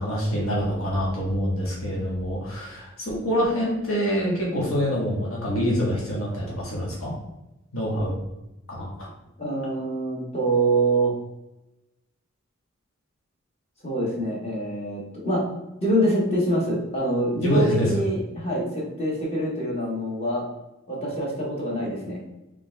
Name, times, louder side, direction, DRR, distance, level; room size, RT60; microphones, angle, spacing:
voice 1, 0.0-7.1 7.7-8.1 8.7-9.1 17.4-18.0, equal, 85° left, -4 dB, 1.4 m, -26 dB
voice 2, 9.4-11.1 13.8-15.4 15.8-20.4 20.9-22.2, right 1 dB, 30° left, -4 dB, 1.3 m, -25 dB
3.9 x 3.5 x 3.3 m, 0.94 s
head